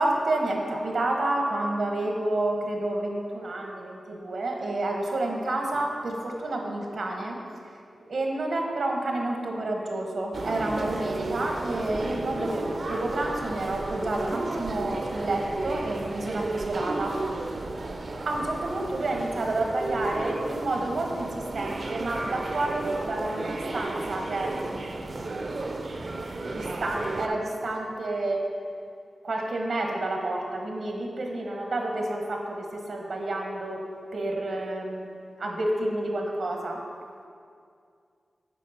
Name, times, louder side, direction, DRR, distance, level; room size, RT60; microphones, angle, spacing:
voice 1, 0.0-7.4 8.0-17.1 18.2-25.5 26.4-28.4 29.2-33.8 34.1-35.1 35.4-36.8, right 2 dB, 75° right, 1 dB, 1.2 m, -29 dB
sound 1, 10.3-27.3, right 2 dB, 55° right, 0.6 m, -33 dB
8.3 x 4.5 x 5.7 m, 2.3 s
wide cardioid pair, 90°, 0 cm